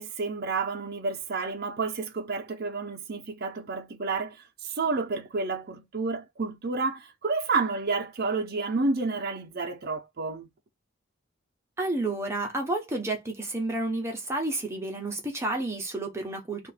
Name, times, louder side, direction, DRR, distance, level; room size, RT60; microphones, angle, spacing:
voice 1, 0.0-4.4 4.6-10.5, right 3 dB, 50° right, 0.6 m, -30 dB
voice 2, 11.8-16.7, right 2 dB, 15° right, 0.8 m, -30 dB
2.8 x 2.5 x 4.0 m
head